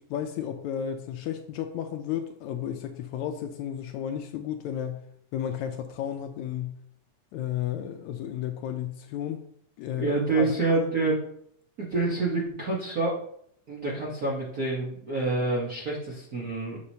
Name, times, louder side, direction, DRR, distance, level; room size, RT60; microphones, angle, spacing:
voice 1, 0.0-5.0 5.3-6.8 7.3-9.4 9.8-10.8, left 9 dB, 80° left, 6 dB, 1.7 m, -33 dB
voice 2, 10.0-11.2 11.8-13.2 13.7-16.8, right 3 dB, 65° right, -5 dB, 0.9 m, -27 dB
7.8 x 6.6 x 2.8 m, 0.67 s
omnidirectional pair, 3.6 m